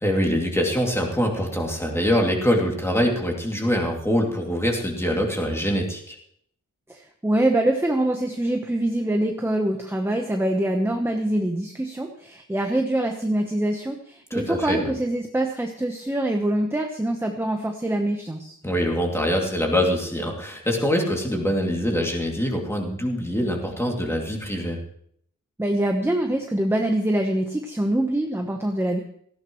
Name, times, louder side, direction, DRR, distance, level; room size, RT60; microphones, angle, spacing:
voice 1, 0.0-6.2 14.3-14.9 18.6-24.8, equal, 10° left, 0 dB, 2.6 m, -24 dB
voice 2, 6.9-18.6 25.6-29.0, right 1 dB, 5° right, 3 dB, 1.0 m, -24 dB
18.0 x 15.0 x 3.1 m, 0.65 s
wide cardioid pair, 160°, 32 cm